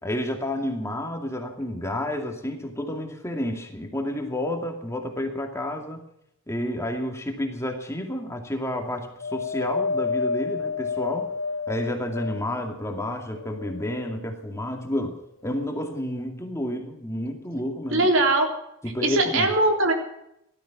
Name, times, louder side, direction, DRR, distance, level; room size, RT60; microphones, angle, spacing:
voice 1, 0.0-6.0 6.5-11.3 11.7-18.1 18.8-19.5, left 1 dB, 15° left, 4 dB, 2.3 m, -30 dB
Wind, 9.2-12.7 13.3-14.3 15.1-15.2, left 5 dB, 70° left, 0.9 m, -30 dB
voice 2, 17.9-18.5 19.0-19.9, right 2 dB, 75° right, 4 dB, 3.4 m, -20 dB
17.5 x 13.0 x 6.0 m, 0.79 s
head